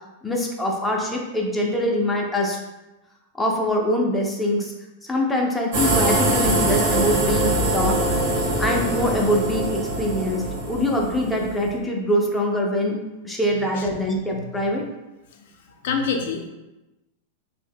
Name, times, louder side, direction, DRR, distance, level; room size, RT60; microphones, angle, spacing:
voice 1, 0.2-2.6 3.4-4.7 5.0-8.0 8.6-13.0 13.2-14.8, left 1 dB, 5° left, -1 dB, 0.5 m, -23 dB
sound 1, 5.7-11.7, right 2 dB, 60° right, 0.8 m, -23 dB
voice 2, 15.8-16.5, left 5 dB, 70° left, 3 dB, 0.4 m, -25 dB
2.1 x 2.0 x 3.3 m, 1.0 s
hypercardioid pair, 130°, 0 cm